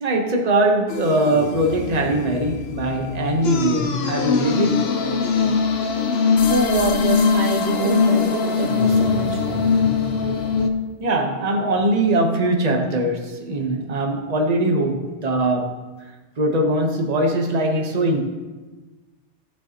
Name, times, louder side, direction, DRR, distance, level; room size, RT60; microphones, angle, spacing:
voice 1, 0.0-4.9 11.0-15.9 16.4-18.2, right 1 dB, 35° right, 1.1 m, -21 dB
sound 1, 0.9-10.7, left 5 dB, 65° left, 1.0 m, -21 dB
voice 2, 6.5-9.6, right 4 dB, 70° right, 1.1 m, -25 dB
15.5 x 6.8 x 2.9 m
omnidirectional pair, 1.2 m